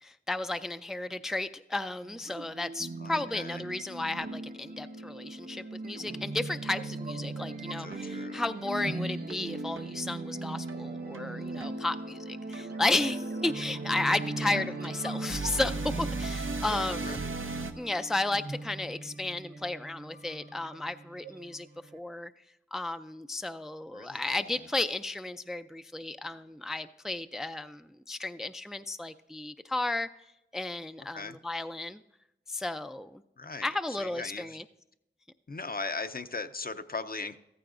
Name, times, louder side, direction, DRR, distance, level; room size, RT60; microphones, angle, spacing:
voice 1, 0.0-17.3 17.8-21.7 21.9-22.3 22.7-30.1 30.5-32.0 32.5-33.2 33.6-34.6, left 2 dB, ahead, 10 dB, 0.3 m, -33 dB
sound 1, 2.0-22.0, right 2 dB, 50° right, 0.8 m, -45 dB
sound 2, 2.8-17.7, right 3 dB, 90° right, 0.8 m, -37 dB
voice 2, 3.0-3.6 7.8-8.4 14.4-14.6 16.9-17.2 23.9-24.6 31.1-31.4 33.4-33.7 34.0-34.6 35.5-37.4, left 3 dB, 50° left, 10 dB, 0.6 m, -39 dB
14.5 x 14.0 x 2.5 m, 0.85 s
wide cardioid pair, 50°, 20 cm